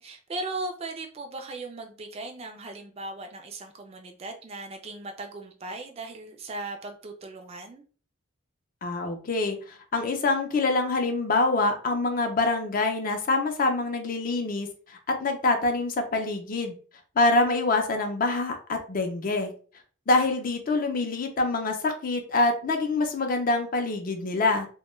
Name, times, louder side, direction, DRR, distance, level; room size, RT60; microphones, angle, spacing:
voice 1, 0.0-7.9, right 2 dB, 30° right, 4 dB, 0.3 m, -38 dB
voice 2, 8.8-16.7 17.2-19.5 20.1-24.7, left 3 dB, 45° left, 5 dB, 0.4 m, -25 dB
2.2 x 2.1 x 3.0 m, 0.40 s
head